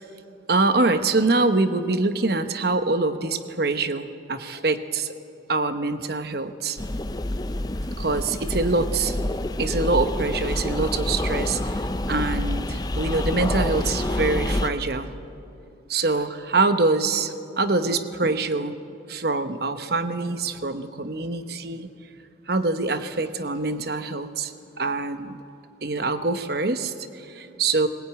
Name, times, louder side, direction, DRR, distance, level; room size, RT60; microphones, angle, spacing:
voice 1, 0.5-5.1 5.5-6.8 8.0-9.2 9.6-15.1 15.9-18.8 19.1-21.9 22.5-24.5 24.8-25.4 25.8-27.9, right 3 dB, 55° right, 9 dB, 1.0 m, -24 dB
sound 1, 6.8-14.7, left 1 dB, 20° left, 0.6 m, -27 dB
20.5 x 20.0 x 9.2 m, 2.7 s
head